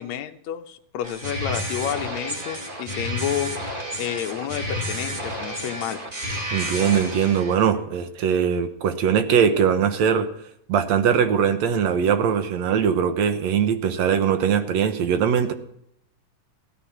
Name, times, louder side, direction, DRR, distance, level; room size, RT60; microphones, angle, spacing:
voice 1, 0.0-3.5 4.0-6.0, left 10 dB, 70° left, 6 dB, 2.0 m, -30 dB
sound 1, 1.0-7.5, equal, 20° right, 1.6 m, -31 dB
voice 2, 6.5-10.3 10.7-15.5, right 7 dB, 65° right, 9 dB, 2.0 m, -21 dB
16.0 x 13.0 x 5.8 m, 0.74 s
omnidirectional pair, 3.7 m